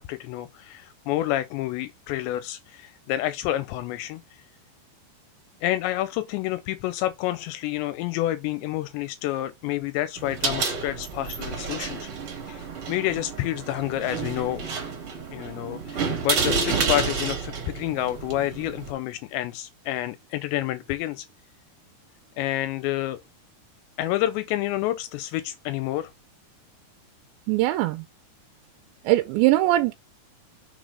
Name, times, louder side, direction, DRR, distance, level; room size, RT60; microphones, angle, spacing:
voice 1, 0.0-4.2 5.6-12.1 12.5-14.7 15.3-21.3 22.4-23.2 24.0-26.1, left 14 dB, 85° left, 2.8 m, -29 dB
sound 1, 10.2-18.9, right 5 dB, 45° right, 1.8 m, -30 dB
voice 2, 27.5-28.0 29.1-29.9, right 16 dB, 85° right, 2.9 m, -21 dB
6.3 x 4.1 x 4.6 m
omnidirectional pair, 5.1 m